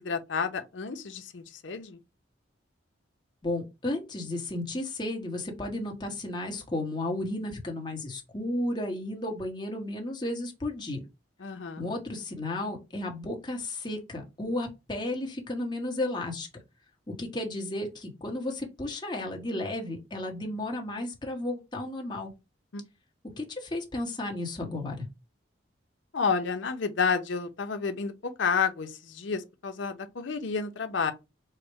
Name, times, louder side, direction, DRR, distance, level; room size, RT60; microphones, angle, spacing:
voice 1, 0.0-2.0 11.4-11.9 22.7-22.8 26.1-31.1, left 5 dB, 75° left, 0.6 m, -30 dB
voice 2, 3.4-11.0 11.8-16.5 17.1-22.3 23.4-25.1, left 1 dB, 25° left, 1.0 m, -33 dB
4.5 x 2.1 x 4.5 m
head